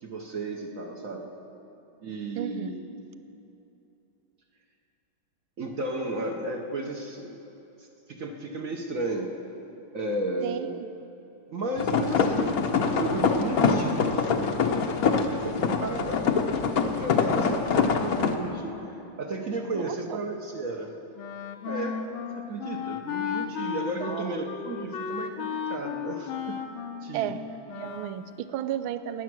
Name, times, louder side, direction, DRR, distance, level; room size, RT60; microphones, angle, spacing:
voice 1, 0.0-1.3 2.0-2.8 5.6-7.3 7.8-9.3 9.9-10.8 11.5-18.8 19.2-20.9 21.7-22.0 22.4-26.6 27.0-27.4, right 2 dB, 50° right, 2 dB, 1.1 m, -33 dB
voice 2, 2.3-2.7 10.4-10.9 19.7-20.2 24.0-24.4 27.1-27.4 27.8-29.2, right 11 dB, 85° right, 12 dB, 1.4 m, -33 dB
sound 1, 11.8-18.3, left 5 dB, 60° left, 1.1 m, -25 dB
Wind instrument woodwind instrument, 21.2-28.2, left 7 dB, 80° left, 1.6 m, -34 dB
20.0 x 8.2 x 6.1 m, 2.9 s
omnidirectional pair, 2.2 m